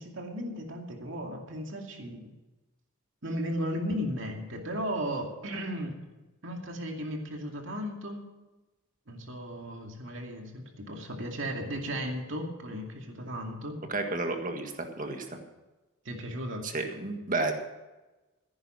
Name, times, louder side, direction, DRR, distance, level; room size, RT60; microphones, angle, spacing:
voice 1, 0.0-2.3 3.2-6.0 6.4-8.2 9.1-13.8 16.0-16.7, equal, 60° right, 2 dB, 2.4 m, -35 dB
voice 2, 13.9-15.4 16.6-17.5, right 2 dB, 40° right, 4 dB, 1.7 m, -32 dB
15.0 x 10.5 x 6.2 m, 1.1 s
head